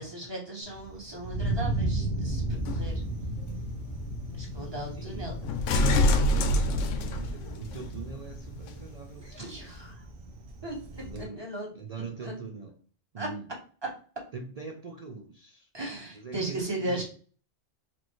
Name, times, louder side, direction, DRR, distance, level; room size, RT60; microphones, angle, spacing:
voice 1, 0.0-2.9 4.3-5.4 5.8-6.0 9.2-10.0 10.6-11.7 12.2-12.3 13.2-13.3 15.7-17.0, right 1 dB, 20° right, 1.5 m, -37 dB
Thunder, 0.6-11.2, right 2 dB, 90° right, 1.2 m, -35 dB
sound 1, 2.5-7.9 8.7-8.8, left 1 dB, 75° left, 0.9 m, -28 dB
voice 2, 4.9-5.4 5.9-9.7 11.0-11.5 11.7-12.8 13.1-13.5 14.3-15.7 16.1-17.0, right 4 dB, 65° right, 0.3 m, -42 dB
4.3 x 3.1 x 3.0 m
omnidirectional pair, 1.3 m